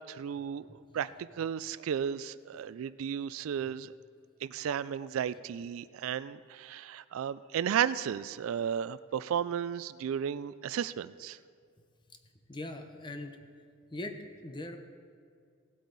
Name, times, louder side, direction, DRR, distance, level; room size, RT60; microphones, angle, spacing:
voice 1, 0.1-3.9 4.4-11.4, right 8 dB, 75° right, 17 dB, 0.3 m, -34 dB
voice 2, 12.5-13.3 13.9-14.8, left 1 dB, 20° left, 6 dB, 0.8 m, -41 dB
17.0 x 8.2 x 4.0 m, 2.2 s
head